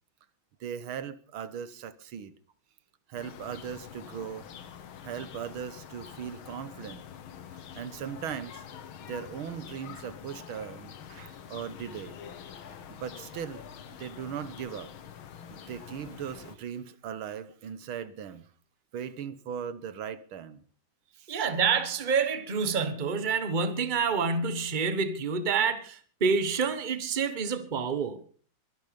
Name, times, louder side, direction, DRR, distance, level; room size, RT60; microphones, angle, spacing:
voice 1, 0.6-2.3 3.1-4.5 5.0-7.0 7.7-8.6 9.1-12.2 12.9-13.6 14.0-14.9 15.5-18.5 18.9-20.6 21.1-21.3, right 8 dB, 85° right, 2.0 m, -38 dB
sound 1, 3.2-16.6, left 8 dB, 80° left, 2.1 m, -46 dB
voice 2, 21.3-28.3, right 5 dB, 25° right, 1.3 m, -28 dB
23.0 x 11.5 x 5.2 m
omnidirectional pair, 2.2 m